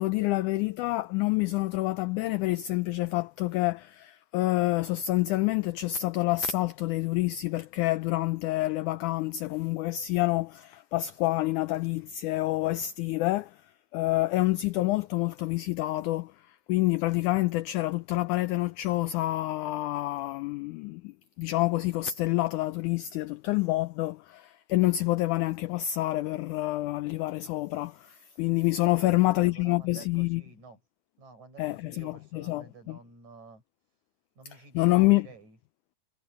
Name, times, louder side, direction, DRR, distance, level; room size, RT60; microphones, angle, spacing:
voice 1, 0.0-13.6 13.9-30.4 31.6-33.0 34.7-35.3, left 17 dB, 80° left, 1.8 m, -27 dB
voice 2, 28.9-30.8 31.2-33.6 34.4-35.6, right 4 dB, 50° right, 8.9 m, -51 dB
omnidirectional pair, 4.1 m